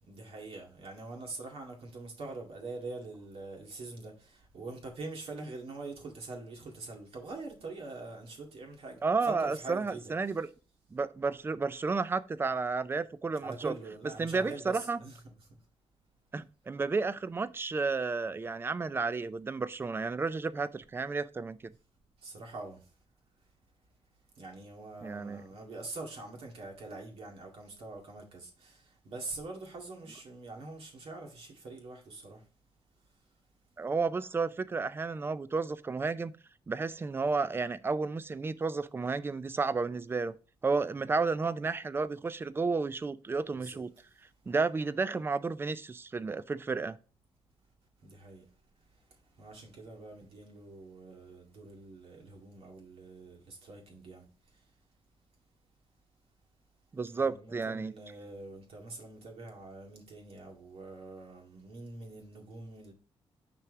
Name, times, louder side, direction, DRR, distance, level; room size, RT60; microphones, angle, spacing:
voice 1, 0.0-10.4 13.4-15.2 22.2-22.8 24.4-32.4 43.5-43.8 48.0-48.5 49.4-54.3 57.2-62.9, right 3 dB, 70° right, 2.0 m, -44 dB
voice 2, 9.0-10.5 10.9-13.7 14.2-15.0 16.3-21.7 25.0-25.4 33.8-36.3 36.7-40.3 40.6-43.9 44.5-47.0 56.9-57.9, right 4 dB, 20° right, 0.4 m, -32 dB
5.8 x 4.6 x 3.6 m
cardioid pair, 120°, 10 cm